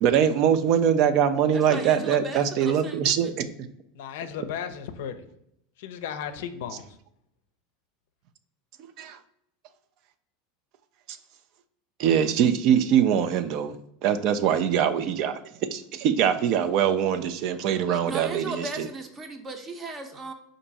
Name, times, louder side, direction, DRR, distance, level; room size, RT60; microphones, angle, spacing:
voice 1, 0.0-3.5 9.0-9.2 12.0-13.8 14.0-15.3 15.7-18.9, right 9 dB, 55° right, 10 dB, 0.4 m, -23 dB
voice 2, 1.5-3.3 17.9-20.3, right 2 dB, 25° right, 6 dB, 0.7 m, -36 dB
voice 3, 3.9-5.3 5.8-6.9, left 8 dB, 75° left, 10 dB, 0.4 m, -35 dB
4.5 x 2.6 x 4.0 m, 0.76 s
supercardioid pair, 110°, 0 cm